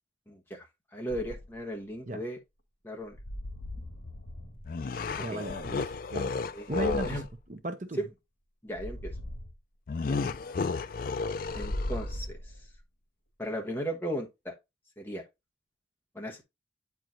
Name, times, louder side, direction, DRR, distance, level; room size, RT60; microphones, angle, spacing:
voice 1, 0.3-0.6 0.9-2.4 2.8-3.2 5.3-5.5 6.5-6.7 7.0-7.2 8.0-8.1 8.6-9.1 10.1-10.2 11.5-12.5 13.4-14.5 15.0-15.2 16.1-16.4, equal, 10° left, 1.1 m, -36 dB
sound 1, 1.1-1.6 3.1-4.7 6.7-7.3 8.7-9.5 11.4-12.8, left 1 dB, 85° left, 1.4 m, -38 dB
sound 2, 4.6-7.3 9.9-12.2, left 4 dB, 45° left, 0.4 m, -33 dB
voice 2, 5.2-6.3 6.7-7.2 7.5-8.0, right 2 dB, 40° right, 0.8 m, -36 dB
8.9 x 4.7 x 2.5 m
head